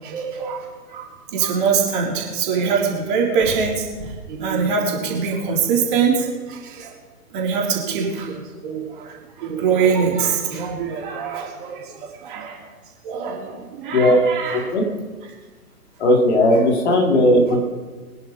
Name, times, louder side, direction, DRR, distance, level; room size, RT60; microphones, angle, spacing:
voice 1, 0.0-6.9 7.3-12.7 13.0-14.7 16.5-16.7, right 6 dB, 35° right, -2 dB, 4.0 m, -23 dB
voice 2, 14.5-14.8 16.0-17.6, left 1 dB, 45° left, -1 dB, 4.3 m, -16 dB
23.5 x 10.5 x 4.9 m, 1.3 s
figure-of-eight pair, 130°, 45 cm